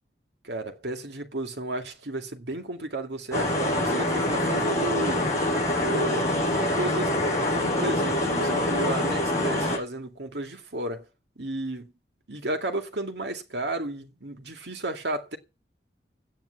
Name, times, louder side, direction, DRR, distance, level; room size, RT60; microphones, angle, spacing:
voice 1, 0.4-5.3 5.8-7.1 7.5-11.1 11.4-11.9 12.3-15.4, right 1 dB, 80° right, 2.2 m, -33 dB
sound 1, 3.3-9.8, left 1 dB, 20° left, 6.6 m, -25 dB
12.0 x 9.4 x 8.3 m
head